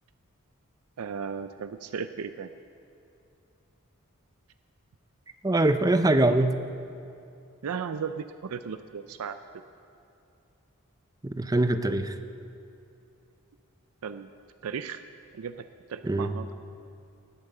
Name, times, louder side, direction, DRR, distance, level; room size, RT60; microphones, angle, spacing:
voice 1, 1.0-2.5 6.2-6.4 7.6-9.4 14.0-14.3 14.6-15.0 15.3-15.5 15.9-16.5, right 6 dB, 85° right, 10 dB, 0.4 m, -35 dB
voice 2, 5.4-6.5 11.2-12.1 16.0-16.3, right 2 dB, 15° right, 10 dB, 0.5 m, -23 dB
19.0 x 8.5 x 6.6 m, 2.7 s
head